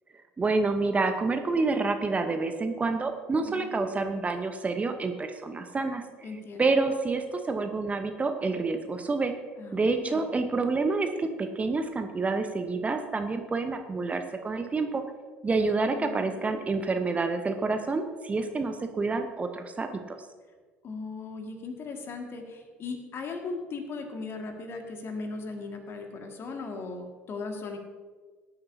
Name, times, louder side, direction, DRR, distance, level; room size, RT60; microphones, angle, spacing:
voice 1, 0.4-6.0 6.6-9.3 9.7-15.0 15.4-20.2, right 3 dB, 20° right, 6 dB, 1.0 m, -28 dB
voice 2, 6.2-6.7 9.6-10.2 15.9-16.8 20.8-27.8, left 3 dB, 40° left, 4 dB, 2.0 m, -38 dB
18.5 x 10.5 x 2.8 m, 1.5 s
figure-of-eight pair, 60°, 6 cm